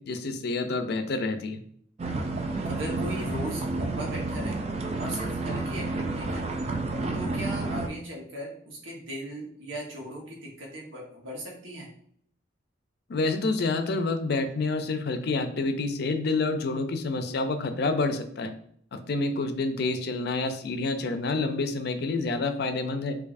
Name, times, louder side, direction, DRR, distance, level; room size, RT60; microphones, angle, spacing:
voice 1, 0.0-1.6 13.1-18.5 18.9-23.2, left 3 dB, 55° left, 8 dB, 0.4 m, -28 dB
sound 1, 2.0-7.9, right 2 dB, 30° right, 0.3 m, -30 dB
voice 2, 2.6-4.7 5.0-6.5 7.1-11.9, right 1 dB, 80° right, -2 dB, 1.3 m, -37 dB
4.6 x 2.6 x 2.5 m, 0.65 s
head